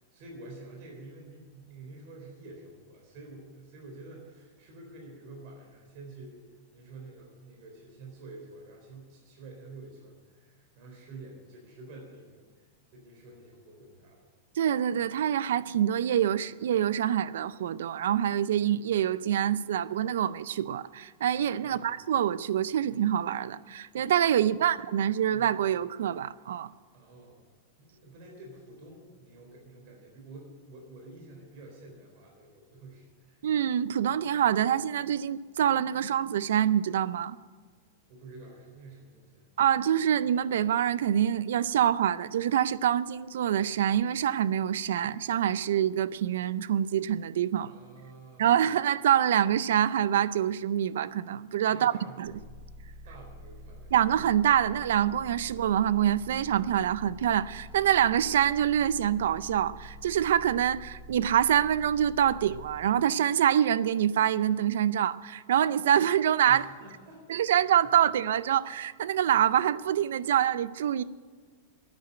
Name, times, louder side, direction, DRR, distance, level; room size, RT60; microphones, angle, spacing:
voice 1, 0.0-6.4 6.7-14.3 21.6-21.9 24.5-24.7 25.3-25.5 26.9-27.4 27.8-33.5 38.1-39.5 47.6-48.6 51.7-52.4 53.0-53.9 66.5-67.6 67.8-68.0, right 2 dB, 50° right, 3.9 m, -49 dB
voice 2, 14.6-26.7 33.4-37.4 39.6-47.7 48.4-52.3 53.9-66.6 67.3-71.0, right 10 dB, 80° right, 0.5 m, -26 dB
sound 1, 52.2-62.8, equal, 10° left, 4.8 m, -47 dB
9.8 x 9.8 x 9.8 m
supercardioid pair, 150°, 0 cm